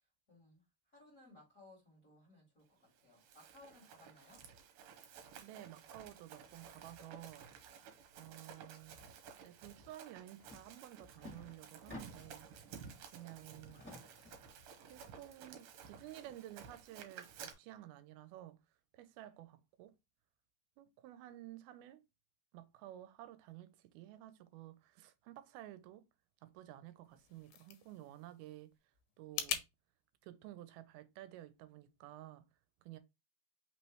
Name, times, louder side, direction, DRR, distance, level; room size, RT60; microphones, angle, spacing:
voice 1, 0.3-0.6 0.9-4.4, left 2 dB, 30° left, 2.0 m, -61 dB
Run, 3.0-17.5, right 7 dB, 75° right, 2.6 m, -55 dB
voice 2, 5.4-7.4 8.2-9.0 9.4-12.5 13.1-13.9 14.9-18.6 18.9-20.0 20.8-22.0 22.5-26.1 26.4-28.7 29.2-29.6 30.2-32.5 32.8-33.0, right 14 dB, 90° right, 2.5 m, -53 dB
sound 1, 10.4-10.6 10.9-12.5 12.9-14.5, left 2 dB, 5° left, 1.2 m, -54 dB
sound 2, 27.0-29.7, left 9 dB, 85° left, 2.5 m, -43 dB
5.6 x 3.1 x 3.0 m
omnidirectional pair, 4.3 m